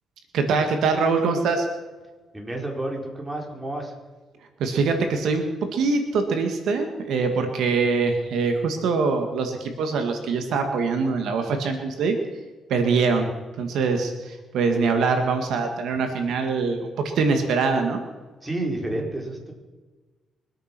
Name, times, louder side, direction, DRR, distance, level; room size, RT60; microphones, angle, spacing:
voice 1, 0.3-1.7 4.6-5.5 5.7-12.2 12.7-13.3 13.6-18.0, right 4 dB, 75° right, 5 dB, 2.0 m, -23 dB
voice 2, 2.3-3.9 18.4-19.5, right 1 dB, 15° right, 0 dB, 4.4 m, -30 dB
24.0 x 8.9 x 6.2 m, 1.3 s
cardioid pair, 90°, 0 cm